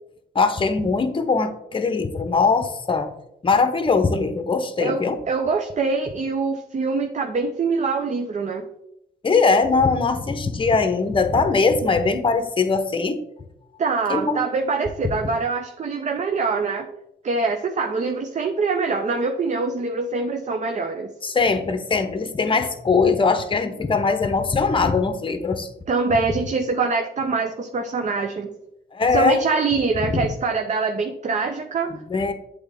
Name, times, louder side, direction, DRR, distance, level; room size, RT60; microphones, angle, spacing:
voice 1, 0.3-3.1 3.4-5.2 9.2-13.2 14.1-14.4 15.0-15.1 21.2-25.7 28.9-29.4 32.1-32.3, left 4 dB, 30° left, 8 dB, 0.8 m, -21 dB
voice 2, 4.8-8.7 13.8-16.9 17.2-21.1 25.9-28.5 29.1-32.0, right 4 dB, 40° right, 4 dB, 0.6 m, -24 dB
8.0 x 3.5 x 3.5 m, 0.81 s
cardioid pair, 80°, 18 cm